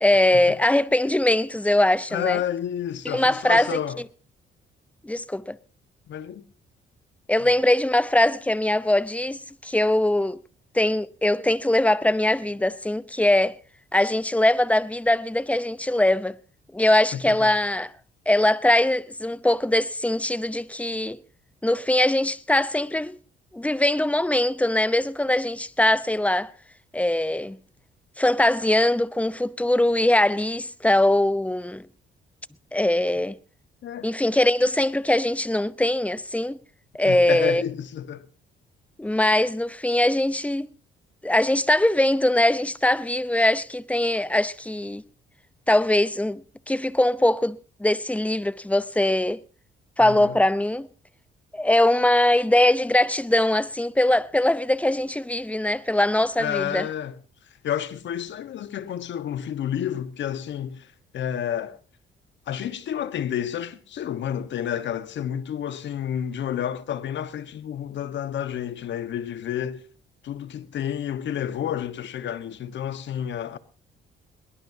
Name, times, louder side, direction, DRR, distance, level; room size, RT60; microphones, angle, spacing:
voice 1, 0.0-2.4 3.0-3.7 5.0-5.6 7.3-10.4 10.7-13.6 13.9-16.4 16.7-17.9 18.3-21.2 21.6-23.2 23.5-26.5 26.9-27.6 28.2-31.9 32.7-33.4 34.0-36.6 36.9-37.6 39.0-40.7 41.2-45.0 45.7-49.4 50.0-50.9 51.5-56.9, left 1 dB, 5° left, 0.7 m, -21 dB
voice 2, 2.1-4.0 6.1-6.4 17.1-17.5 33.8-34.1 37.0-38.3 50.0-50.4 56.4-57.1 57.6-61.8 62.5-69.8 70.2-73.6, left 9 dB, 65° left, 1.4 m, -30 dB
21.5 x 20.0 x 2.8 m
cardioid pair, 90°, 20 cm